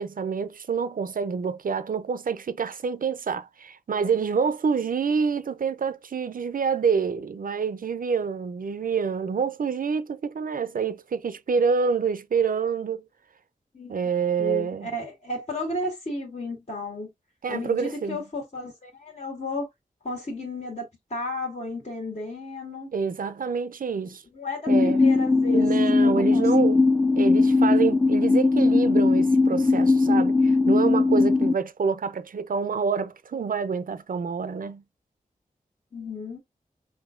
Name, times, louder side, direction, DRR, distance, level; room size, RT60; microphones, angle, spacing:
voice 1, 0.0-13.0 13.9-14.9 17.4-18.2 22.9-24.2 24.7-25.0 25.5-26.8 27.2-34.8, right 6 dB, 75° right, 0.5 m, -27 dB
voice 2, 13.7-14.1 14.4-17.1 17.5-19.7 20.0-22.9 24.3-25.7 26.0-26.5 35.9-36.4, left 2 dB, 50° left, 1.6 m, -33 dB
sound 1, 24.7-31.5, left 3 dB, 25° left, 0.5 m, -20 dB
5.6 x 2.6 x 2.4 m
wide cardioid pair, 80°, 15 cm